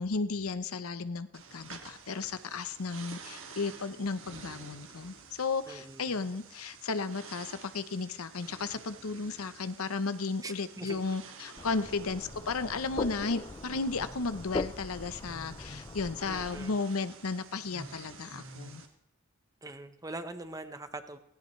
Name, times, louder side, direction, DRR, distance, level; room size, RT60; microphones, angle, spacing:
voice 1, 0.0-18.8, left 4 dB, 90° left, 12 dB, 0.8 m, -34 dB
sound 1, 1.3-18.9, right 4 dB, 65° right, 1.9 m, -50 dB
voice 2, 5.7-6.2 10.4-11.0 16.3-16.8 19.6-21.2, right 2 dB, 15° right, 9 dB, 0.9 m, -43 dB
sound 2, 11.6-16.7, left 2 dB, 20° left, 0.4 m, -40 dB
17.0 x 17.0 x 3.2 m, 0.86 s
head